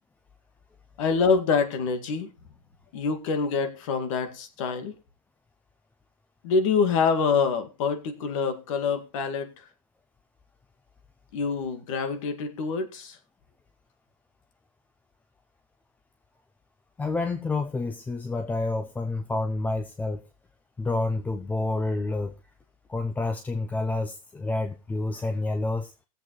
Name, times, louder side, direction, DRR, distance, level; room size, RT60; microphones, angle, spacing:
voice 1, 1.0-2.3 2.9-4.9 6.4-9.6 11.3-13.2, left 5 dB, 65° left, 8 dB, 2.0 m, -26 dB
voice 2, 17.0-20.2 20.8-22.3 22.9-25.9, left 2 dB, 10° left, 8 dB, 0.5 m, -29 dB
19.0 x 7.7 x 3.2 m, 0.29 s
supercardioid pair, 150°, 18 cm